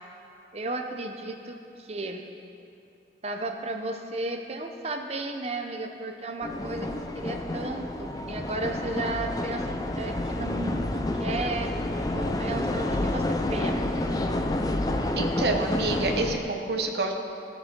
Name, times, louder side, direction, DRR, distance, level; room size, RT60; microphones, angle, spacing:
voice 1, 0.5-2.2 3.2-11.7 12.1-13.8 14.2-14.5, right 2 dB, 35° right, 4 dB, 0.7 m, -34 dB
sound 1, 6.4-16.4, left 1 dB, 20° left, 0.4 m, -29 dB
voice 2, 15.2-17.1, right 3 dB, 65° right, 2 dB, 0.8 m, -28 dB
14.0 x 7.2 x 3.7 m, 2.7 s
head